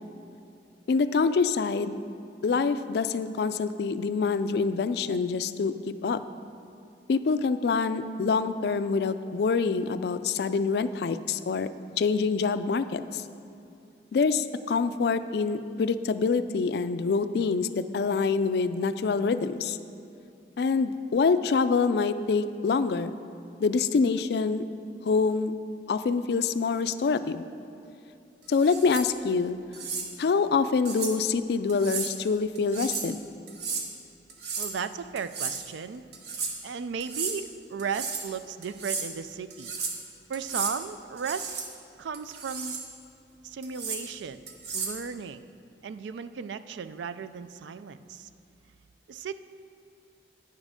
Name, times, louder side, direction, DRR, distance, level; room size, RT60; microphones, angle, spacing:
voice 1, 0.9-2.0 2.4-6.2 7.1-13.2 14.1-19.8 20.6-23.1 23.6-24.6 25.0-25.6 25.9-27.5 28.5-29.6 30.2-33.2, left 4 dB, 60° left, 12 dB, 0.3 m, -26 dB
sound 1, 28.5-29.1 29.7-30.1 30.9-31.2 31.7-32.1 32.6-33.1 33.5-33.9 34.3-34.8 35.2-35.6 36.1-36.5 37.0-37.4 37.8-38.3 38.6-39.1 39.5-40.0 40.3-40.8 41.2-41.7 42.1-42.9 43.6-44.0 44.5-45.0, right 5 dB, 65° right, 1.1 m, -34 dB
voice 2, 34.6-36.0 36.6-39.7 40.3-41.5 42.0-42.8 43.4-44.4 44.7-45.5 45.8-48.3 49.1-49.3, right 6 dB, 80° right, 13 dB, 0.4 m, -35 dB
9.6 x 7.3 x 5.0 m, 2.6 s
head